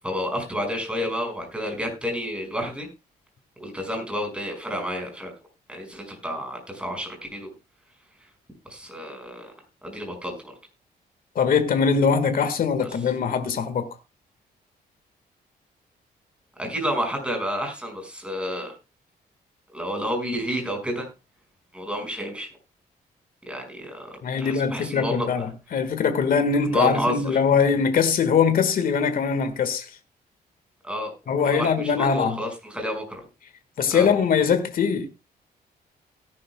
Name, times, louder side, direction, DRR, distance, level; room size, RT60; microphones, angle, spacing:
voice 1, 0.0-2.9 3.6-5.3 5.7-7.5 8.7-9.5 9.8-10.5 16.6-18.7 19.7-21.1 21.7-22.5 23.5-25.3 26.6-27.1 30.8-31.1 31.4-33.2 33.9-34.1, equal, 5° right, 5.4 m, -30 dB
voice 2, 11.3-13.9 24.2-29.9 31.3-32.4 33.8-35.1, left 6 dB, 60° left, 1.6 m, -22 dB
17.5 x 11.0 x 2.2 m
cardioid pair, 115°, 16 cm